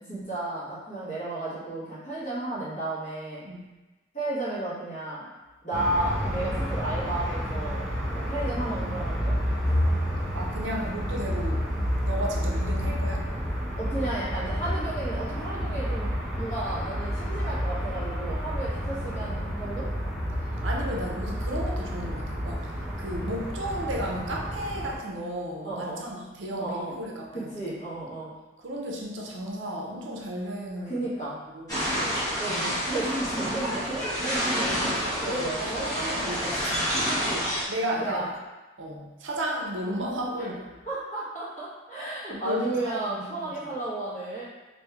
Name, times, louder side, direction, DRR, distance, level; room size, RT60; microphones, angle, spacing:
voice 1, 0.0-3.5 4.1-5.2 5.6-7.8 8.1-9.4 13.7-16.1 16.3-19.9 25.6-26.1 26.6-26.9 27.3-28.3 30.8-31.4 32.3-35.9 37.1-37.5 38.0-38.3 40.4-40.5 40.8-44.4, right 2 dB, 40° left, -10 dB, 1.4 m, -33 dB
sound 1, 5.7-24.9, equal, 5° right, 0.7 m, -30 dB
voice 2, 10.3-11.7 12.1-13.3 18.9-19.5 20.6-27.7 28.6-31.1 31.5-31.9 34.2-34.3 35.2-36.8 37.7-38.3 38.8-40.7 42.3-43.5, equal, 75° right, -1 dB, 0.6 m, -34 dB
sound 2, 31.7-37.6, equal, 20° left, 1.0 m, -28 dB
3.1 x 2.6 x 3.4 m, 1.1 s
head